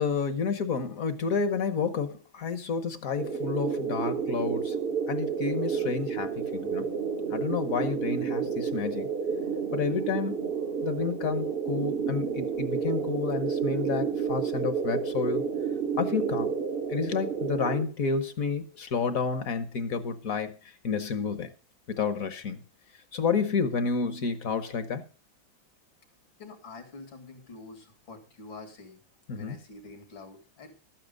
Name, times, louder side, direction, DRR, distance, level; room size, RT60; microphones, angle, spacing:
voice 1, 0.0-4.7 5.1-6.9 7.3-9.1 9.7-10.3 10.8-15.5 16.0-16.5 16.9-20.6 20.8-21.5 21.9-22.6 23.1-25.0 29.3-29.6, left 5 dB, 55° left, 1.2 m, -30 dB
sound 1, 3.2-17.9, right 6 dB, 45° right, 0.8 m, -30 dB
voice 2, 26.4-29.0 29.3-30.7, left 3 dB, 85° left, 3.0 m, -46 dB
13.0 x 9.0 x 5.2 m
omnidirectional pair, 2.1 m